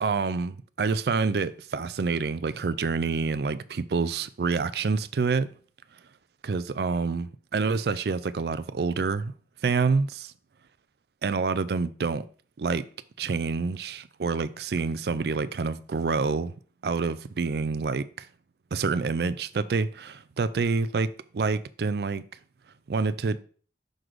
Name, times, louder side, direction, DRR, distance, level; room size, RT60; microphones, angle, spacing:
voice 1, 0.0-5.5 6.4-9.3 9.6-10.3 11.2-12.2 12.6-12.9 13.2-16.5 16.8-18.3 18.7-22.2 22.9-23.4, right 4 dB, 65° right, 0.4 m, -27 dB
6.4 x 3.9 x 4.7 m
head